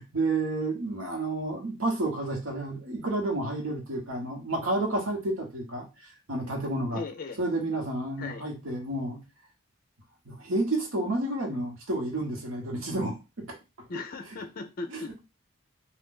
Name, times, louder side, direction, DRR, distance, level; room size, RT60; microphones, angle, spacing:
voice 1, 0.0-7.0 7.4-9.2 10.2-13.6 14.9-15.2, right 2 dB, 90° right, 1.1 m, -30 dB
voice 2, 6.9-7.4 8.2-8.4 13.9-15.2, left 3 dB, 45° left, 0.4 m, -37 dB
2.5 x 2.4 x 3.6 m
head